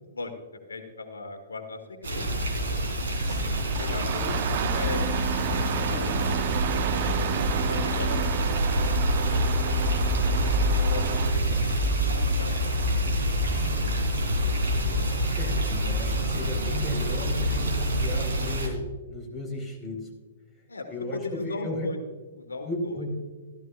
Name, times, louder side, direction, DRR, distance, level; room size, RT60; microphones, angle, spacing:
voice 1, 0.7-2.8 3.7-5.0 5.6-8.4 8.7-8.8 9.1-9.7 10.9-11.7 12.0-13.5 20.7-22.0 22.3-23.1, left 3 dB, 80° left, 5 dB, 1.4 m, -39 dB
sound 1, 2.0-18.7, equal, 65° right, 3.3 m, -26 dB
voice 2, 3.2-3.7 11.5-11.7 15.4-20.0 20.9-21.9 22.6-23.1, left 1 dB, ahead, -1 dB, 4.3 m, -34 dB
Engine starting, 3.3-11.4, right 10 dB, 45° right, 0.7 m, -31 dB
14.0 x 13.5 x 2.4 m, 1.3 s
figure-of-eight pair, 115°, 0 cm